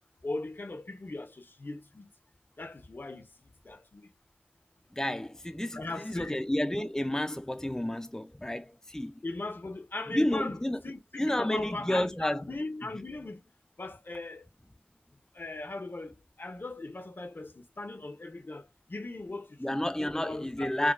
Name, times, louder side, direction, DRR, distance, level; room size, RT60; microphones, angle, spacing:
voice 1, 0.2-2.1 2.6-3.3 3.6-4.1 5.7-6.4 9.2-10.6 10.8-13.4 13.8-14.5 15.3-20.9, left 2 dB, 70° left, 0.7 m, -39 dB
voice 2, 4.9-9.2 10.1-10.8 11.2-12.5 19.6-20.9, left 1 dB, 15° left, 0.4 m, -31 dB
4.9 x 2.2 x 2.4 m
wide cardioid pair, 50°, 4 cm